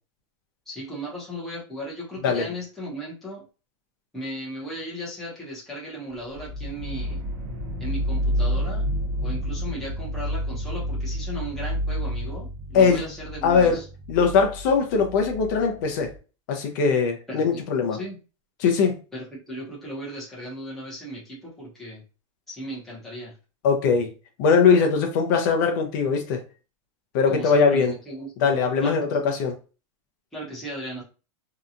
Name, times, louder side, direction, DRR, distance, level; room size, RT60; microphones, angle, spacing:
voice 1, 0.7-3.4 4.1-7.2 7.8-8.9 9.2-13.8 17.3-17.6 18.0-18.2 19.1-22.0 22.5-23.3 27.3-28.5 28.8-29.3 30.3-31.0, right 1 dB, ahead, 0.7 m, -36 dB
sound 1, 6.3-16.2, equal, 40° right, 0.7 m, -30 dB
voice 2, 12.7-13.1 13.4-13.8 14.1-16.1 16.5-18.0 18.6-19.0 23.6-24.1 24.4-26.4 27.1-27.9 28.4-29.5, left 5 dB, 35° left, 0.5 m, -21 dB
2.8 x 2.2 x 2.5 m
supercardioid pair, 175°, 16 cm